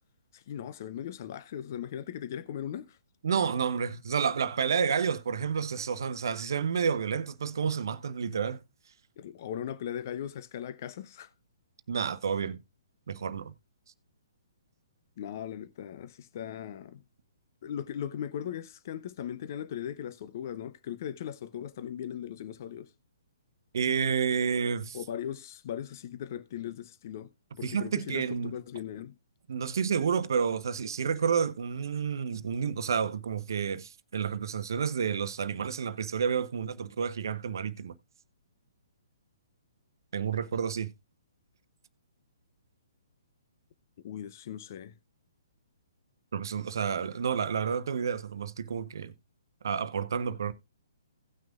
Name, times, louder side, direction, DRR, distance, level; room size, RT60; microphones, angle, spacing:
voice 1, 0.3-3.0 9.2-11.3 15.2-17.0 17.6-22.9 24.9-27.3 27.6-29.2 44.0-44.9, left 9 dB, 45° left, 0.6 m, -38 dB
voice 2, 3.2-8.6 11.9-12.6 13.1-13.5 23.7-25.0 27.6-28.6 29.5-37.9 40.1-40.9 46.3-49.1 49.6-50.5, right 6 dB, 60° right, 0.7 m, -30 dB
17.0 x 6.1 x 2.4 m
figure-of-eight pair, 130°, 2 cm